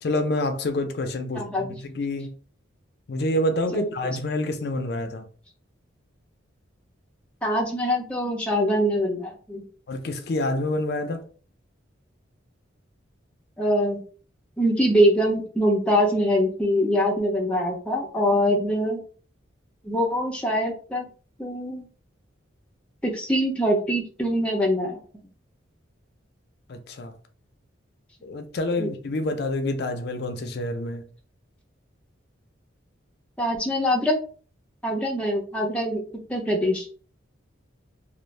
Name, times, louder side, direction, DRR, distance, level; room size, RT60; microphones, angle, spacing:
voice 1, 0.0-2.3 3.1-5.3 9.9-11.3 26.7-27.1 28.2-31.1, left 1 dB, 55° left, 0.4 m, -27 dB
voice 2, 1.3-1.7 3.7-3.8 7.4-9.6 13.6-14.0 14.6-19.0 19.8-21.0 21.4-21.9 23.0-25.0 28.8-28.9 33.4-34.2 34.8-36.9, equal, 5° left, 0.6 m, -23 dB
2.5 x 2.0 x 3.1 m
head